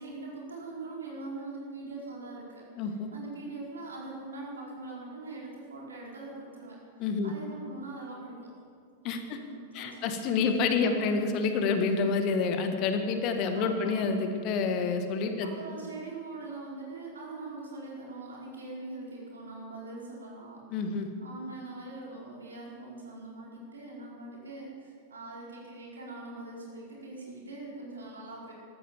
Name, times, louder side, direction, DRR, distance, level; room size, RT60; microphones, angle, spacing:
voice 1, 0.0-6.8 7.2-8.4 9.3-10.1 10.8-11.1 13.5-14.0 15.4-20.6 21.2-28.5, right 2 dB, 70° right, -3 dB, 4.6 m, -42 dB
voice 2, 2.8-3.1 7.0-7.3 9.0-9.4 9.7-15.5 20.7-21.1, left 4 dB, 40° left, 7 dB, 1.6 m, -28 dB
14.0 x 13.5 x 7.2 m, 2.1 s
figure-of-eight pair, 90°, 0 cm